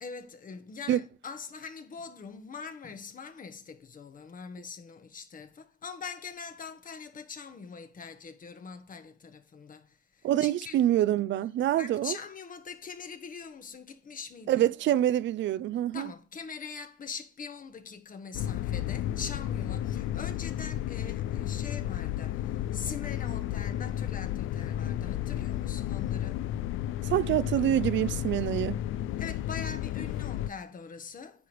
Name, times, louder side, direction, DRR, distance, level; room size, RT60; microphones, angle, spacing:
voice 1, 0.0-10.8 11.8-14.7 15.9-26.5 29.2-31.5, left 5 dB, 45° left, 1.3 m, -43 dB
voice 2, 10.2-12.2 14.5-16.1 27.0-28.8, right 12 dB, 70° right, 0.5 m, -26 dB
sound 1, 18.3-30.5, left 12 dB, 85° left, 0.4 m, -32 dB
9.4 x 3.3 x 6.1 m
cardioid pair, 90°, 20 cm